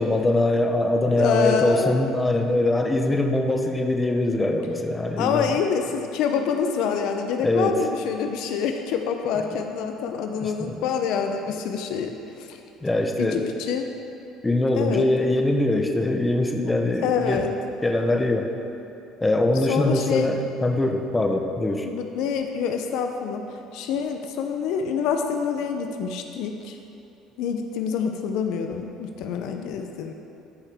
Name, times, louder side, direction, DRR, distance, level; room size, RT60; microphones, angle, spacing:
voice 1, 0.0-5.6 7.4-7.8 10.4-10.8 12.8-13.5 14.4-17.4 17.8-18.5 19.2-21.9, left 2 dB, 15° left, 4 dB, 0.8 m, -22 dB
voice 2, 1.2-1.9 5.2-12.1 12.4-12.6 13.2-13.9 14.8-15.1 17.0-17.5 19.7-20.3 21.8-23.4 23.7-26.8 27.4-30.1, left 6 dB, 75° left, 5 dB, 0.6 m, -26 dB
13.0 x 5.4 x 3.5 m, 2.7 s
supercardioid pair, 85°, 0 cm